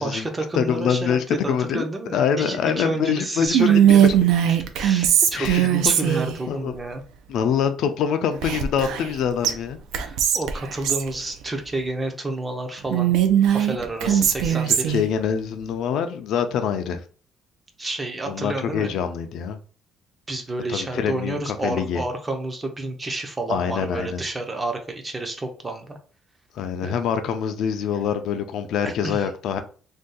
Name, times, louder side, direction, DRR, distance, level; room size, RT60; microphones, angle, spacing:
voice 1, 0.0-4.2 4.7-7.0 10.0-13.1 13.5-14.9 17.8-19.0 20.3-26.0 26.8-26.9 28.8-29.3, right 2 dB, 15° right, 5 dB, 0.4 m, -30 dB
voice 2, 0.5-1.9 2.1-3.7 4.0-4.1 5.3-6.2 6.5-6.7 7.3-9.8 14.0-14.3 14.7-17.0 18.3-19.6 20.7-22.0 23.5-24.2 26.5-29.6, left 7 dB, 60° left, 8 dB, 0.3 m, -25 dB
Whispering, 3.5-6.4 8.4-9.2 9.4-9.5 9.9-11.1 12.9-15.0, right 10 dB, 85° right, 0.4 m, -19 dB
2.6 x 2.3 x 3.7 m, 0.40 s
cardioid pair, 175°, 0 cm